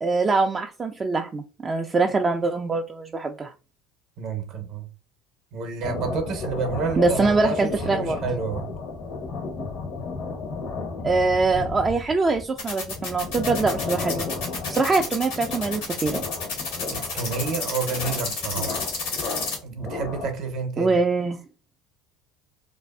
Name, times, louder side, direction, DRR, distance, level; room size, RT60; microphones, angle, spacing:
voice 1, 0.0-3.5 7.0-8.2 11.0-14.3 14.7-16.2 20.8-21.4, right 3 dB, 25° right, 0.3 m, -23 dB
voice 2, 4.2-4.9 5.5-8.7 16.9-18.8 19.6-21.0, right 5 dB, 55° right, 0.7 m, -30 dB
sound 1, 5.8-20.5, left 4 dB, 55° left, 0.7 m, -33 dB
sound 2, 12.6-19.6, left 4 dB, 75° left, 1.0 m, -30 dB
2.5 x 2.3 x 2.2 m
hypercardioid pair, 75°, 0 cm